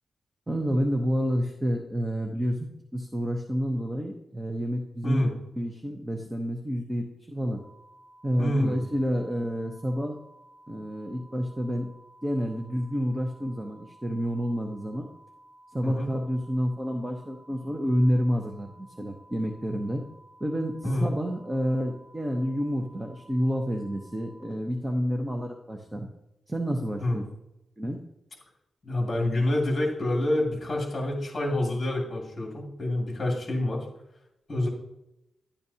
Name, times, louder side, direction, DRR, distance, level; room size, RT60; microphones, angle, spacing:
voice 1, 0.5-5.2 5.6-7.6 8.2-10.2 10.7-11.9 12.2-15.1 15.7-20.0 20.4-26.1 26.5-27.2 27.8-28.0, equal, 15° right, 2 dB, 0.8 m, -29 dB
sound 1, 7.6-24.4, right 1 dB, 70° right, 4.2 m, -55 dB
voice 2, 8.4-8.8 15.8-16.1 20.8-21.1 27.0-27.2 28.8-33.9 34.5-34.7, left 1 dB, 25° left, -2 dB, 2.4 m, -27 dB
12.0 x 10.0 x 2.8 m, 0.90 s
wide cardioid pair, 125°, 0 cm